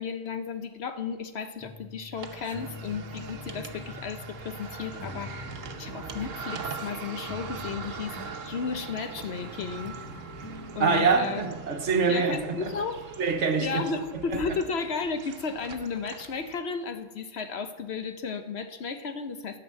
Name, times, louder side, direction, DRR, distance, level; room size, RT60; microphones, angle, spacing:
voice 1, 0.0-10.0 10.7-11.4 12.1-13.1 13.6-19.6, left 5 dB, 60° left, 1.1 m, -34 dB
sound 1, 1.6-13.3, left 3 dB, 35° left, 0.3 m, -46 dB
sound 2, 2.2-16.6, right 5 dB, 90° right, 1.2 m, -41 dB
voice 2, 10.8-12.7 13.2-13.9 14.3-14.4, right 5 dB, 70° right, 1.4 m, -25 dB
12.5 x 5.5 x 7.5 m
omnidirectional pair, 1.3 m